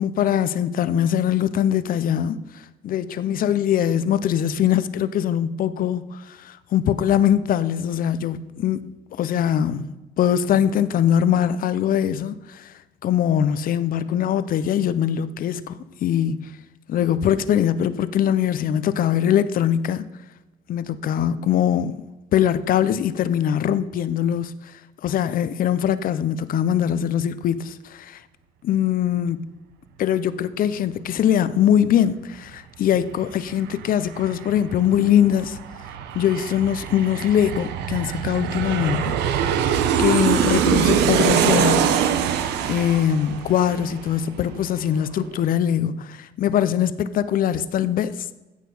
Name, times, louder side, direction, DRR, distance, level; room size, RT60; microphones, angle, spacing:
voice 1, 0.0-2.4 2.8-8.8 9.2-9.9 10.2-12.7 13.0-15.7 16.0-16.5 16.9-20.0 20.7-22.0 22.3-24.5 25.0-28.2 28.6-29.5 30.0-35.6 36.1-39.2 40.0-42.1 42.7-48.3, left 9 dB, 55° left, 0.7 m, -22 dB
Aircraft, 32.9-33.0 33.3-44.6 44.9-45.0, right 8 dB, 85° right, 1.0 m, -23 dB
15.5 x 6.6 x 5.5 m
cardioid pair, 110°, 17 cm